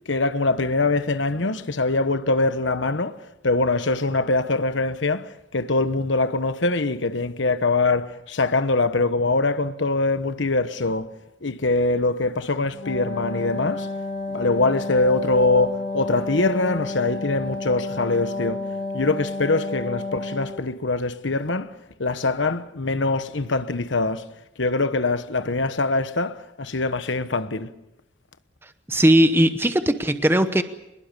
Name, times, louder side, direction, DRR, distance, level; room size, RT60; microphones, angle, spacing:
voice 1, 0.1-11.1 11.4-13.9 14.3-18.6 18.9-24.3 24.6-27.7, left 3 dB, 85° left, 1.2 m, -23 dB
Wind instrument woodwind instrument, 12.7-20.7, left 2 dB, 65° left, 4.1 m, -31 dB
voice 2, 28.9-30.6, right 1 dB, 10° right, 0.9 m, -18 dB
25.0 x 21.0 x 6.9 m
head